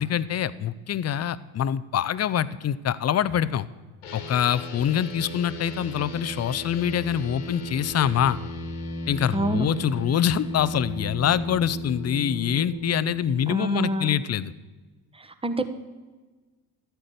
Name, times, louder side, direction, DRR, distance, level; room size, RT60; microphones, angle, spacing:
voice 1, 0.0-3.7 4.1-8.4 9.1-14.5, left 9 dB, 35° left, 17 dB, 0.7 m, -25 dB
sound 1, 4.0-13.4, left 1 dB, 80° left, 2.1 m, -36 dB
voice 2, 9.3-9.6 13.5-14.2 15.1-15.7, right 1 dB, 10° right, 9 dB, 1.3 m, -27 dB
13.0 x 8.9 x 6.8 m, 1.3 s
hypercardioid pair, 55°, 45 cm